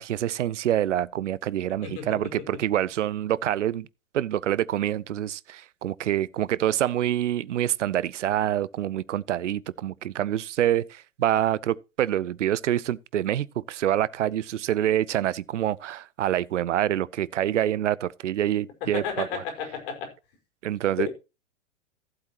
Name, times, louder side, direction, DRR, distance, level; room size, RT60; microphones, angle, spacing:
voice 1, 0.0-3.9 4.1-19.4 20.6-21.1, right 12 dB, 65° right, 0.7 m, -26 dB
voice 2, 1.8-2.2 18.8-20.1 21.0-21.1, left 7 dB, 45° left, 5.0 m, -32 dB
15.0 x 8.1 x 2.9 m
figure-of-eight pair, 105°, 39 cm